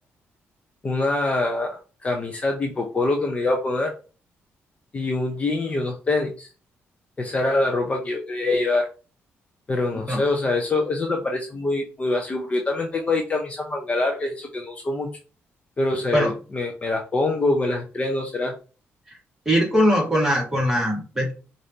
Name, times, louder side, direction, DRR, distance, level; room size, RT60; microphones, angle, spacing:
voice 1, 0.8-3.9 4.9-6.5 7.2-8.9 9.7-15.1 15.8-18.5, left 2 dB, 30° left, 2 dB, 0.7 m, -24 dB
voice 2, 19.5-21.3, equal, 10° right, -2 dB, 1.8 m, -21 dB
4.9 x 2.6 x 2.8 m, 0.34 s
cardioid pair, 120°, 5 cm